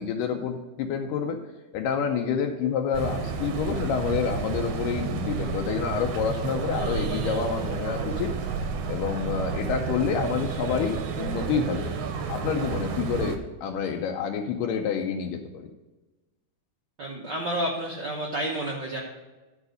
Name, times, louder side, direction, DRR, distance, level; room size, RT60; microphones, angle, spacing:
voice 1, 0.0-1.4 1.7-8.3 8.9-11.9 12.3-15.7, left 6 dB, 85° left, 3 dB, 2.3 m, -28 dB
sound 1, 2.9-13.4, right 5 dB, 70° right, 1.6 m, -31 dB
voice 2, 17.0-19.0, right 1 dB, 90° right, -2 dB, 0.9 m, -30 dB
10.5 x 4.8 x 6.4 m, 1.1 s
omnidirectional pair, 3.7 m